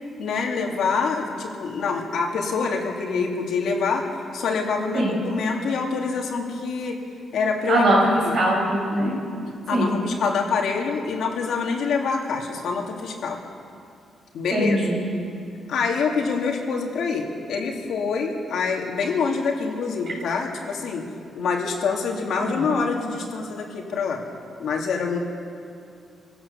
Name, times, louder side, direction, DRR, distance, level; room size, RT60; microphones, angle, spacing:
voice 1, 0.2-4.0 4.3-7.0 7.3-7.8 8.2-8.3 8.9-9.2 9.7-13.4 14.3-14.8 15.7-21.1 21.3-24.2 24.6-25.2, left 5 dB, 65° left, 1 dB, 2.6 m, -26 dB
voice 2, 7.7-9.1 9.7-10.0 14.5-15.0 22.5-22.6, right 1 dB, 45° right, -4 dB, 7.6 m, -21 dB
26.0 x 16.5 x 7.1 m, 2.4 s
cardioid pair, 180°, 0 cm